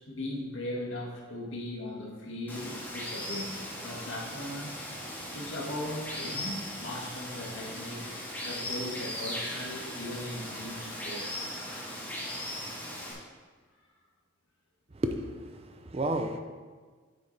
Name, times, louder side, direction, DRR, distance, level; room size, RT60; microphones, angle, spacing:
voice 1, 0.1-4.7 5.3-8.0 8.4-11.3, left 1 dB, 75° left, 1.8 m, -38 dB
Water, 2.5-13.1, left 1 dB, 10° left, 1.7 m, -38 dB
voice 2, 14.9-16.4, right 1 dB, 30° right, 0.5 m, -32 dB
9.4 x 6.8 x 3.4 m
head